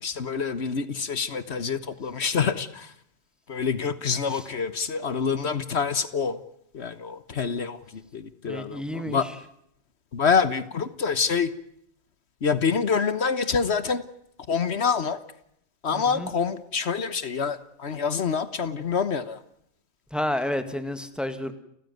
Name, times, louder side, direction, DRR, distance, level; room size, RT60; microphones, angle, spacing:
voice 1, 0.0-2.9 3.5-6.4 6.7-9.3 10.1-11.5 12.4-14.0 14.5-15.2 15.8-19.4, left 6 dB, 70° left, 14 dB, 1.5 m, -26 dB
voice 2, 8.5-9.2 15.9-16.3 20.1-21.5, left 1 dB, ahead, 9 dB, 1.9 m, -30 dB
30.0 x 15.5 x 9.4 m, 0.75 s
omnidirectional pair, 1.2 m